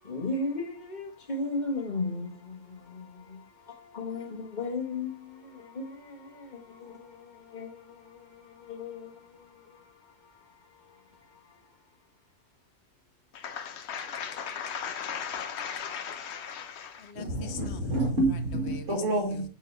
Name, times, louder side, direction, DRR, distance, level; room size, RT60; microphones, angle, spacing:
voice 1, 0.0-11.9, left 3 dB, 35° left, 1.4 m, -37 dB
voice 2, 13.3-17.6 18.7-18.8, left 7 dB, 55° left, 1.0 m, -37 dB
voice 3, 17.1-19.4, right 1 dB, 60° right, 2.2 m, -28 dB
8.2 x 3.6 x 3.3 m
omnidirectional pair, 1.5 m